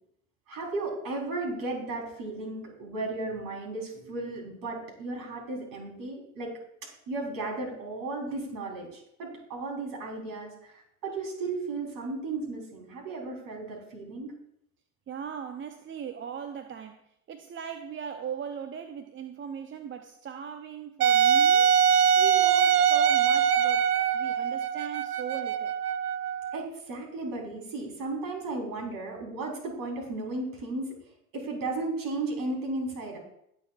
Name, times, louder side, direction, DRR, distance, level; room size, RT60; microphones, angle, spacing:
voice 1, 0.5-6.5 7.1-14.3 26.5-31.0 31.3-33.2, right 2 dB, 45° right, -1 dB, 4.2 m, -35 dB
voice 2, 15.1-17.0 17.3-21.7 22.2-25.7, right 7 dB, 25° right, 8 dB, 0.7 m, -39 dB
Wind instrument woodwind instrument, 21.0-26.6, right 8 dB, 80° right, 0.7 m, -23 dB
21.0 x 7.3 x 2.5 m, 0.74 s
figure-of-eight pair, 75°, 46 cm